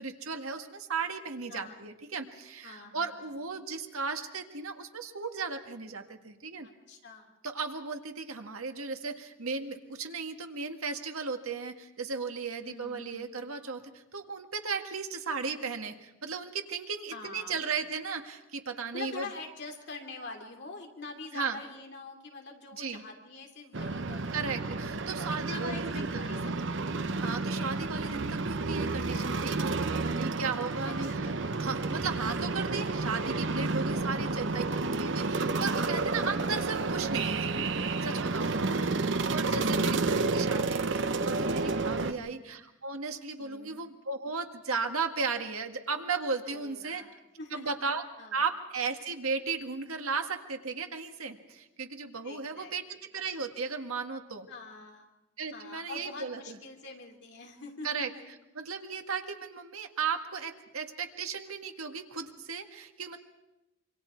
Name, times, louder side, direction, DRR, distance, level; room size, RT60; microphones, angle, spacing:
voice 1, 0.0-6.7 7.4-19.3 21.3-21.6 22.7-23.0 24.3-26.4 27.2-31.3 31.6-34.6 35.0-37.6 38.0-47.0 47.5-48.0 48.3-54.5 55.4-56.6 57.8-58.1 58.6-63.2, right 5 dB, 90° right, 5 dB, 1.8 m, -35 dB
voice 2, 1.5-1.8 2.6-3.2 6.6-7.4 12.6-13.4 17.1-17.8 18.9-24.4 25.2-26.9 29.9-30.4 30.8-31.5 34.0-34.7 38.3-38.6 39.4-40.3 42.0-42.4 43.4-43.8 46.5-47.8 48.2-48.4 52.2-52.7 54.5-55.1 55.5-58.2, left 3 dB, 55° left, 2 dB, 3.2 m, -46 dB
sound 1, 23.7-42.1, right 3 dB, 60° right, 0.8 m, -30 dB
26.5 x 25.0 x 4.6 m, 0.96 s
head